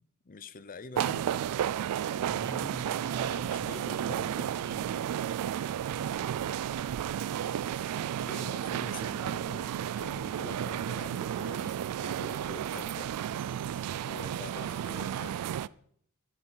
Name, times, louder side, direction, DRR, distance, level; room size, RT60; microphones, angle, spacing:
voice 1, 0.2-1.3 3.4-4.6 8.2-13.1 13.9-15.4, left 4 dB, 40° left, 0.6 m, -46 dB
sound 1, 1.0-15.7, right 10 dB, 85° right, 0.3 m, -33 dB
voice 2, 2.2-4.3 4.6-5.2, right 2 dB, 55° right, 1.5 m, -43 dB
Writing, 7.3-12.9, right 2 dB, 20° left, 1.7 m, -53 dB
11.0 x 7.3 x 5.6 m
head